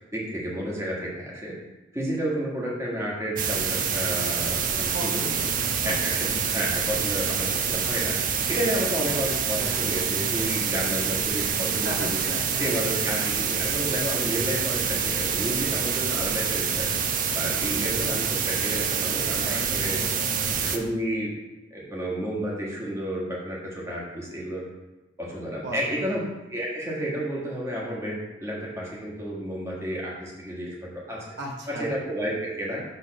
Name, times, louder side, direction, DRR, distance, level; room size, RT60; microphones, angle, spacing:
voice 1, 0.1-1.6 1.9-5.4 5.8-8.2 8.5-12.3 12.6-16.9 17.3-20.0 20.6-21.3 21.7-24.6 25.2-26.2 26.5-31.3 31.7-32.8, equal, 15° right, -5 dB, 1.5 m, -31 dB
sound 1, 3.4-20.8, right 6 dB, 45° right, 0.5 m, -26 dB
voice 2, 4.9-5.9 11.7-12.8 19.4-20.3 25.6-26.1 31.4-31.9, equal, 60° right, -1 dB, 1.0 m, -37 dB
6.6 x 3.5 x 6.2 m, 1.1 s
head